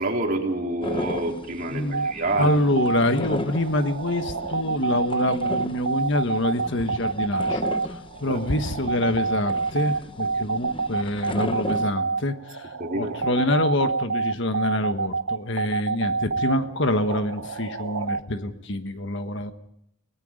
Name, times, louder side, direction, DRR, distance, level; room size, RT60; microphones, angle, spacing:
voice 1, 0.0-2.5 8.3-8.4 12.8-13.2, right 2 dB, 45° right, 0 dB, 3.9 m, -27 dB
sound 1, 0.8-11.9, left 2 dB, 25° left, 0.9 m, -36 dB
voice 2, 1.7-2.1 2.4-12.7 12.9-19.5, left 1 dB, 60° left, 8 dB, 1.4 m, -26 dB
sound 2, 1.9-18.2, right 4 dB, 80° right, 1.0 m, -27 dB
30.0 x 18.5 x 5.1 m, 0.76 s
head